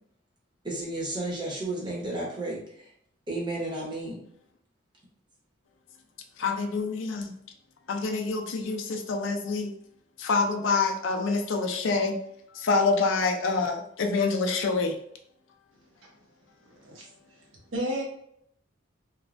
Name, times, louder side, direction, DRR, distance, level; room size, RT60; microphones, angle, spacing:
voice 1, 0.6-2.6 3.3-4.2, right 2 dB, 25° right, -4 dB, 0.8 m, -32 dB
voice 2, 6.4-7.3 7.9-9.7 10.2-12.1 12.6-14.9, left 4 dB, 75° left, 4 dB, 0.4 m, -26 dB
voice 3, 16.7-17.1 17.7-18.0, equal, 75° right, -2 dB, 0.9 m, -31 dB
3.1 x 2.2 x 2.5 m, 0.70 s
head